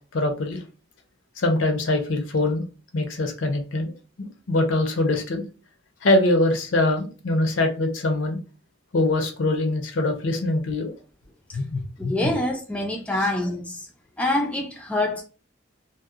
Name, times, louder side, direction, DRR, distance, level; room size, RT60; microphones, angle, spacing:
voice 1, 0.1-0.6 1.4-2.6 2.9-5.4 6.0-8.4 8.9-10.9 11.5-12.3, left 2 dB, 65° left, 0.5 m, -23 dB
voice 2, 12.0-13.9 14.2-15.2, left 1 dB, 5° left, 0.3 m, -25 dB
2.7 x 2.0 x 2.3 m
head